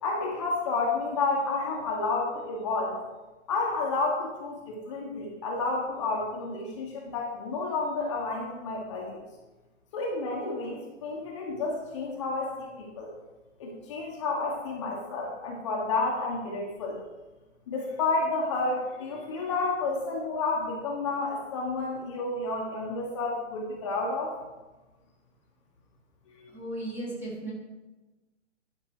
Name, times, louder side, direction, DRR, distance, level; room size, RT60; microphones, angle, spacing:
voice 1, 0.0-3.0 3.5-9.2 9.9-13.1 13.6-17.0 17.7-24.3 26.4-26.5, left 3 dB, 25° left, -2 dB, 1.2 m, -30 dB
voice 2, 26.5-27.5, right 1 dB, 5° right, -5 dB, 1.4 m, -35 dB
11.0 x 5.9 x 4.6 m, 1.2 s
hypercardioid pair, 160°, 37 cm